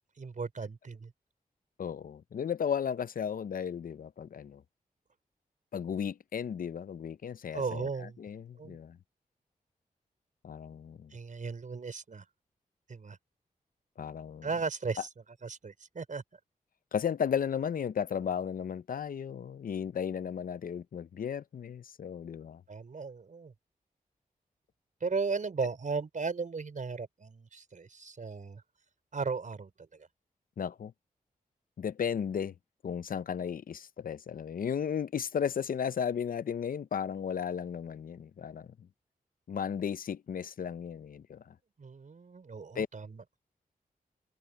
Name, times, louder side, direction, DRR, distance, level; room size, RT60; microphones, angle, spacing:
voice 1, 0.2-1.1 7.5-8.2 8.6-8.8 11.1-12.2 12.9-13.2 14.4-15.1 15.4-16.2 22.7-23.5 25.0-28.6 29.1-29.9 41.8-43.2, right 4 dB, 60° right, 4.6 m, -36 dB
voice 2, 1.8-4.6 5.7-9.0 10.4-11.1 14.0-14.5 16.9-22.6 30.6-30.9 31.8-32.5 32.8-38.7 39.5-41.5 42.8-42.9, left 7 dB, 70° left, 0.6 m, -34 dB
cardioid pair, 75°, 15 cm